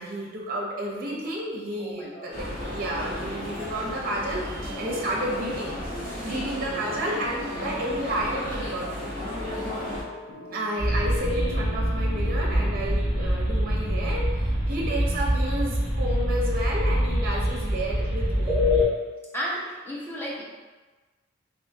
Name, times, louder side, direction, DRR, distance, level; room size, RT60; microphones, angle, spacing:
voice 1, 0.0-5.8 6.2-9.2 10.5-18.6 19.5-19.6, right 1 dB, 50° right, -2 dB, 0.6 m, -31 dB
voice 2, 1.8-2.3 6.4-6.5 19.3-20.4, equal, 10° left, -5 dB, 0.7 m, -33 dB
sound 1, 2.3-10.0, left 1 dB, 45° left, 1.1 m, -34 dB
sound 2, 9.4-14.8, left 4 dB, 65° left, 0.5 m, -42 dB
sound 3, 10.8-18.8, equal, 15° right, 1.4 m, -25 dB
3.4 x 2.6 x 2.7 m, 1.3 s
head